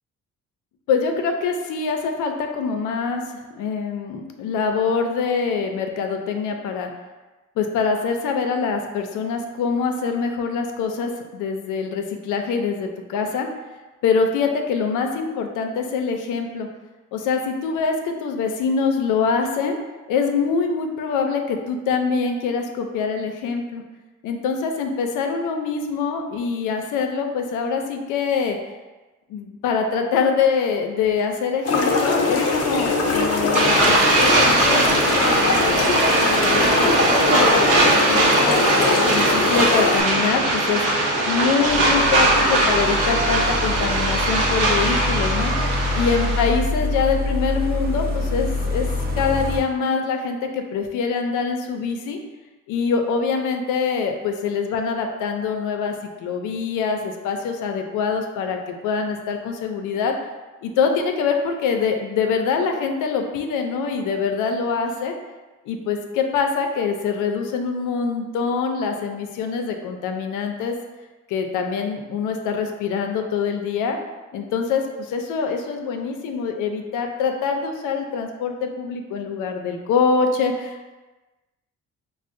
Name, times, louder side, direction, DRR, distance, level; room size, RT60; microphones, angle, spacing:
voice 1, 0.9-3.2 3.5-6.9 7.6-13.5 14.0-16.7 17.1-19.8 20.1-23.8 24.2-28.6 29.3-35.8 36.3-45.7 45.9-48.9 49.1-52.2 52.7-55.9 56.2-60.1 60.6-65.1 65.7-70.7 71.3-74.0 74.3-80.9, left 5 dB, 90° left, 4 dB, 0.5 m, -24 dB
sound 1, 31.6-40.0, left 3 dB, 55° left, 0.7 m, -22 dB
sound 2, 33.5-46.6, right 2 dB, 85° right, 0.7 m, -20 dB
sound 3, 41.6-49.6, left 2 dB, 30° right, 0.7 m, -26 dB
5.3 x 2.1 x 2.5 m, 1.2 s
cardioid pair, 90°, 30 cm